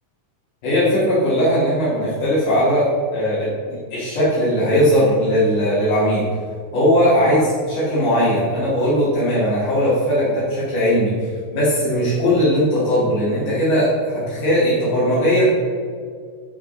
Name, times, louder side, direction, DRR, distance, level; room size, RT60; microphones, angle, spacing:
voice 1, 0.6-6.3 6.7-15.4, equal, 75° left, -11 dB, 4.0 m, -19 dB
11.5 x 5.7 x 4.0 m, 2.2 s
omnidirectional pair, 3.6 m